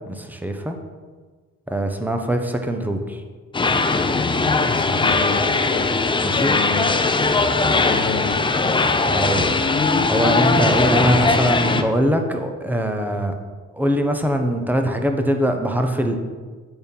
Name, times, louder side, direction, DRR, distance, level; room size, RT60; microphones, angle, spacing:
voice 1, 0.1-0.8 1.7-3.2 6.2-6.6 9.0-9.5 10.1-13.3 13.7-16.2, equal, 5° right, 5 dB, 0.9 m, -22 dB
sound 1, 3.5-11.8, left 3 dB, 15° left, 0.5 m, -19 dB
voice 2, 4.6-5.9 6.4-7.0 7.7-8.4, left 5 dB, 45° left, 4 dB, 0.9 m, -30 dB
8.8 x 4.3 x 5.4 m, 1.5 s
cardioid pair, 90°, 30 cm